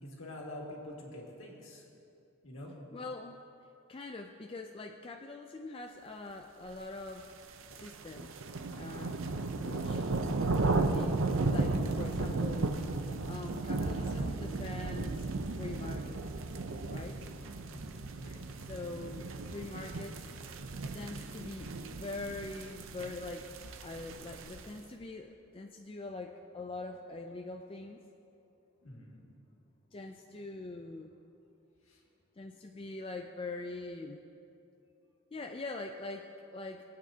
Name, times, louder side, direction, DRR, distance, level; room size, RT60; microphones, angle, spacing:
voice 1, 0.0-1.8 2.4-2.8 17.7-18.5 28.8-29.3 31.9-32.0, left 1 dB, 65° left, -2 dB, 2.0 m, -46 dB
voice 2, 2.9-3.4 3.9-7.3 7.8-8.4 8.7-9.2 9.6-10.1 10.8-12.8 13.2-16.2 16.9-17.2 18.7-20.2 20.9-23.5 23.8-28.0 29.9-31.2 32.4-34.3 35.3-36.8, left 2 dB, 25° left, 3 dB, 0.4 m, -43 dB
sound 1, 7.2-24.8, right 3 dB, 65° right, 0.6 m, -35 dB
21.5 x 8.7 x 2.8 m, 2.8 s
head